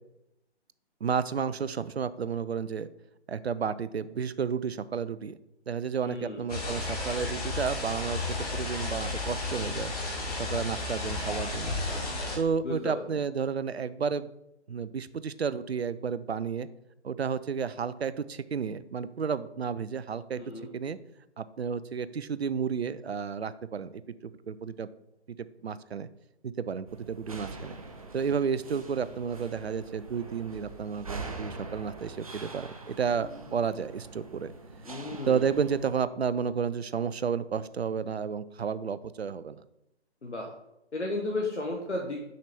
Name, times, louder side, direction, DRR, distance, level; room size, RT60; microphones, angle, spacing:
voice 1, 1.0-2.9 3.3-5.4 5.7-8.2 8.5-9.9 10.4-11.8 12.3-14.3 14.7-16.7 17.0-20.4 20.7-21.0 21.4-24.9 25.3-25.4 25.6-26.1 26.4-27.8 28.1-34.5 35.3-39.6, right 6 dB, 65° right, 16 dB, 0.5 m, -31 dB
voice 2, 6.0-6.4 12.6-13.0 20.4-20.7 34.9-35.4 40.2-40.5 40.9-42.2, left 2 dB, 75° left, 0 dB, 1.1 m, -33 dB
sound 1, 6.5-12.4, left 2 dB, 35° left, 1.8 m, -33 dB
sound 2, 26.9-36.0, right 3 dB, 30° right, 0.7 m, -44 dB
6.4 x 5.7 x 3.5 m, 0.86 s
figure-of-eight pair, 150°, 34 cm